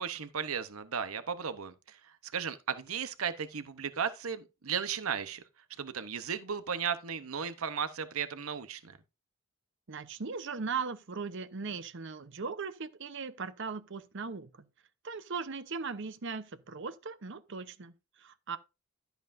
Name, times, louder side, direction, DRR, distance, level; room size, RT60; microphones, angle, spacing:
voice 1, 0.0-5.4 5.8-9.0, right 7 dB, 85° right, 0.9 m, -35 dB
voice 2, 9.9-14.5 15.0-17.9 18.2-18.6, right 5 dB, 60° right, 0.8 m, -38 dB
12.5 x 8.1 x 2.6 m
head